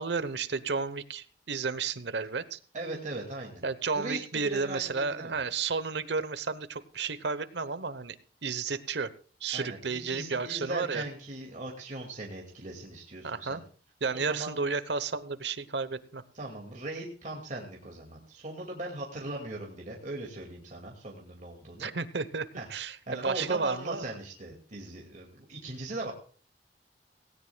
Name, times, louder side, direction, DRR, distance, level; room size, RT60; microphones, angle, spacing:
voice 1, 0.0-2.6 3.6-8.2 8.4-9.1 9.4-11.0 13.2-13.6 14.0-16.2 21.8-23.0 23.2-24.0, right 4 dB, 75° right, 14 dB, 1.0 m, -32 dB
voice 2, 2.7-3.6 3.9-5.5 9.5-13.6 14.1-14.6 16.3-21.9 22.5-22.7 23.1-26.1, right 2 dB, 45° right, 0 dB, 2.3 m, -39 dB
17.5 x 17.5 x 2.3 m, 0.42 s
head